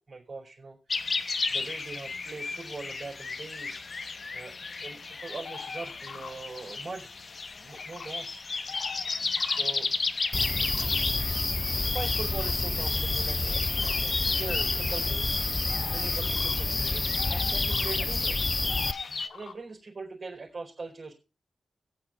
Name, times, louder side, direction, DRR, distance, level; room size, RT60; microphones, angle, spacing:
voice 1, 0.0-4.1 4.3-7.1 7.6-8.4 9.4-9.9 11.9-18.8 19.1-21.1, right 3 dB, 45° right, -1 dB, 4.2 m, -42 dB
sound 1, 0.9-19.3, left 4 dB, 45° left, 1.0 m, -34 dB
sound 2, 5.4-7.0 7.3-8.1 8.5-9.8 10.3-11.2 12.0-12.6 13.8-14.0 14.6-14.7 15.7-16.1 16.3-16.6 16.9-18.0 18.7-19.5, left 6 dB, 85° left, 1.8 m, -45 dB
sound 3, 10.3-18.9, left 3 dB, 30° left, 0.5 m, -28 dB
21.5 x 8.5 x 2.5 m, 0.31 s
wide cardioid pair, 120°, 0 cm